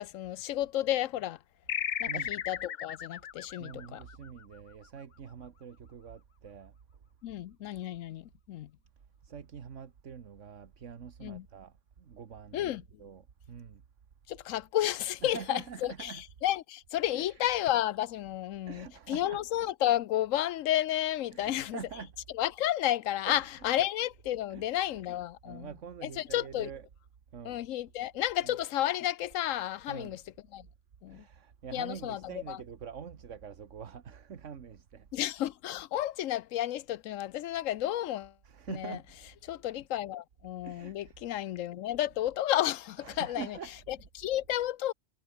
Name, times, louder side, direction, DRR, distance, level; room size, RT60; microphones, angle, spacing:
voice 1, 0.0-1.4 2.0-4.0 7.2-8.7 11.2-11.5 12.5-12.8 14.3-21.8 22.3-25.7 26.0-26.7 27.4-30.2 30.5-30.7 31.0-31.2 31.7-32.6 35.1-38.3 38.7-39.0 39.5-43.6 43.9-44.9, left 13 dB, 85° left, 1.0 m, -32 dB
sound 1, 1.7-4.7, left 8 dB, 50° left, 0.6 m, -36 dB
voice 2, 2.1-2.4 3.6-6.7 9.2-13.8 15.2-16.2 17.1-17.3 18.7-19.4 21.3-22.1 23.3-23.5 24.5-24.7 25.4-26.8 27.3-27.6 28.4-28.6 29.9-30.2 31.1-35.1 38.4-39.0 40.6-41.1 43.0-43.7, right 7 dB, 70° right, 1.7 m, -45 dB
omnidirectional pair, 1.3 m